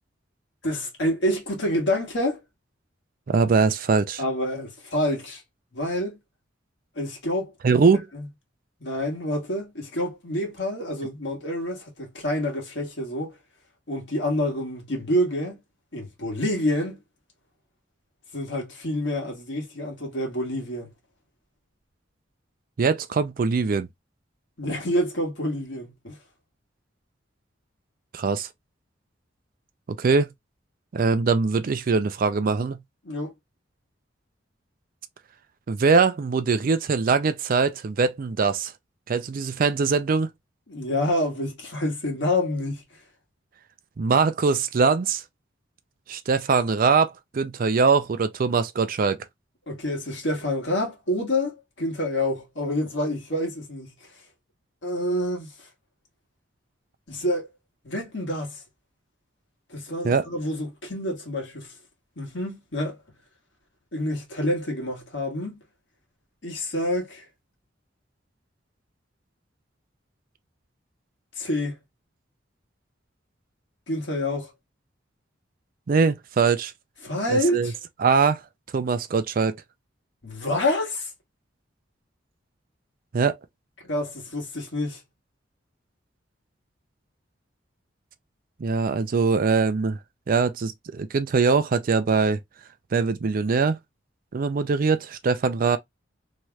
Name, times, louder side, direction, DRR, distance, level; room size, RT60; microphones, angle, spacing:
voice 1, 0.6-2.4 4.2-5.4 5.7-6.2 6.9-7.5 8.1-8.2 8.8-13.4 13.9-15.6 15.9-17.0 18.3-20.9 24.6-26.2 33.0-33.3 40.7-42.8 49.7-53.9 54.8-55.7 57.1-57.5 57.8-58.6 59.7-61.7 62.2-63.0 63.9-65.6 66.4-67.2 71.4-71.8 73.9-74.5 77.0-77.7 80.2-81.1 83.9-85.0, left 1 dB, 70° left, 1.6 m, -27 dB
voice 2, 3.3-4.2 7.6-8.1 22.8-23.9 28.1-28.5 29.9-30.3 30.9-32.8 35.7-38.7 39.1-40.3 44.0-45.2 46.1-49.2 60.0-60.2 75.9-76.7 77.3-77.7 78.0-78.4 78.7-79.6 83.1-83.4 88.6-90.0 90.3-92.4 92.9-93.8 94.3-95.8, right 4 dB, 50° right, 0.4 m, -22 dB
3.1 x 2.8 x 2.3 m
head